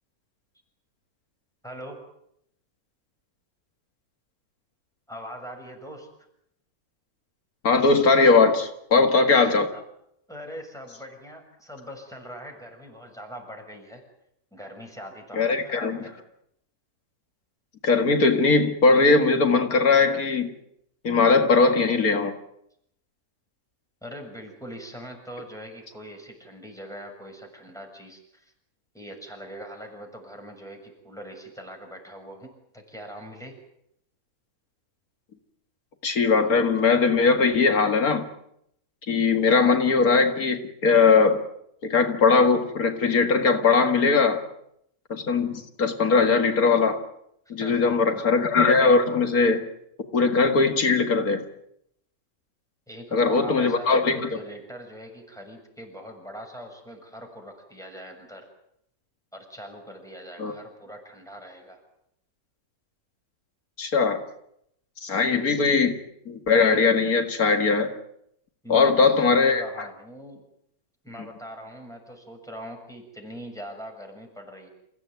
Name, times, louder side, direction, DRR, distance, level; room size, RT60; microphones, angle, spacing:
voice 1, 1.6-2.0 5.1-6.1 9.7-9.8 10.3-14.0 14.5-16.2 24.0-28.5 28.9-33.6 47.4-48.2 52.9-58.4 59.3-61.8 68.6-70.4 71.0-74.7, equal, ahead, 3 dB, 6.7 m, -41 dB
voice 2, 7.6-9.7 15.3-16.0 17.8-20.5 21.0-22.3 36.0-38.2 39.1-41.4 41.8-44.4 45.1-47.0 47.5-49.7 50.1-51.4 53.1-54.3 60.4-60.5 63.8-64.2 65.0-66.0 66.3-67.9 68.7-69.9, left 4 dB, 85° left, 6 dB, 2.4 m, -20 dB
28.0 x 16.5 x 9.3 m, 0.76 s
omnidirectional pair, 1.5 m